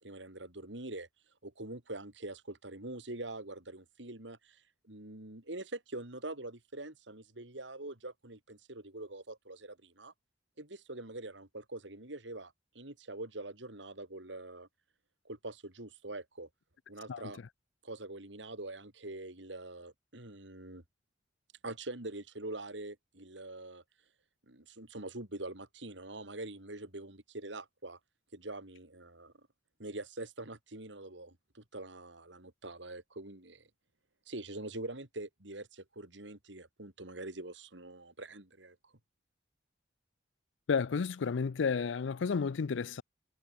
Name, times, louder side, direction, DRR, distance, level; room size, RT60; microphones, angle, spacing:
voice 1, 0.0-1.1 1.4-10.1 10.6-14.7 15.3-16.5 16.9-17.4 17.8-20.8 21.6-23.8 24.5-28.0 28.3-29.5 29.8-33.7 34.3-38.9, right 2 dB, 75° right, 3.6 m, -44 dB
voice 2, 40.7-43.0, left 5 dB, 80° left, 0.5 m, -31 dB
head